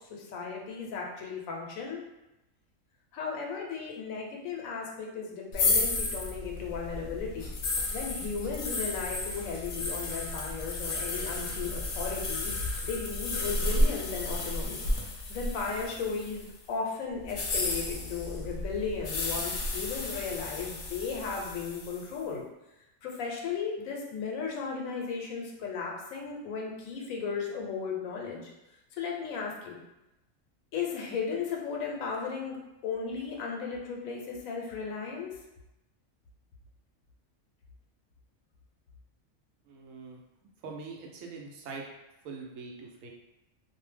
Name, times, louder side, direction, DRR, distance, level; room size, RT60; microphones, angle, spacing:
voice 1, 0.1-2.0 3.1-7.5 7.9-12.5 12.8-14.8 15.3-22.4 23.0-28.5 29.0-29.8 30.7-32.6 32.8-35.3, left 5 dB, 90° left, -1 dB, 1.0 m, -35 dB
sound 1, 5.5-16.5 17.2-22.1, left 2 dB, 70° left, 0.8 m, -32 dB
voice 2, 39.7-40.2 40.6-41.9 42.2-43.1, right 4 dB, 80° right, 0 dB, 0.9 m, -43 dB
2.6 x 2.0 x 3.2 m, 0.94 s
omnidirectional pair, 1.4 m